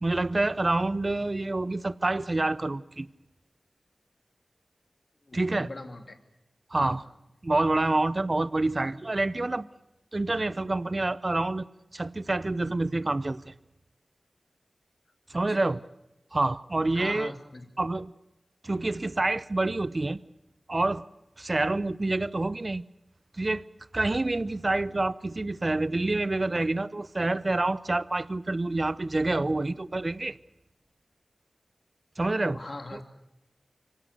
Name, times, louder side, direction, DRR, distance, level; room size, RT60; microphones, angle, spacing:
voice 1, 0.0-3.1 5.3-5.7 6.7-7.0 7.4-9.7 10.1-11.7 11.9-13.5 15.3-15.8 16.3-17.3 17.8-18.1 18.6-20.2 20.7-21.1 21.4-22.8 23.4-23.7 23.9-30.4 32.2-32.6 32.9-33.0, right 2 dB, 40° right, 0.7 m, -27 dB
voice 2, 5.3-6.2 6.7-7.0 15.5-15.7 16.9-17.7 32.5-33.0, left 2 dB, 50° left, 2.8 m, -41 dB
24.5 x 17.5 x 8.2 m
wide cardioid pair, 55°, 0 cm